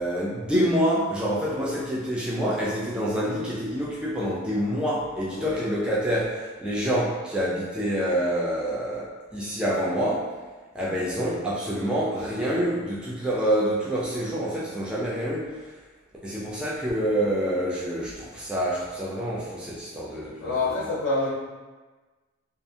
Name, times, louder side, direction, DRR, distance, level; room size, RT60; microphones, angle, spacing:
voice 1, 0.0-10.3 10.7-15.5 16.2-20.8, equal, 5° right, -6 dB, 0.3 m, -27 dB
voice 2, 5.3-5.6 20.4-21.3, left 2 dB, 65° left, -8 dB, 0.5 m, -27 dB
2.6 x 2.4 x 2.3 m, 1.3 s
head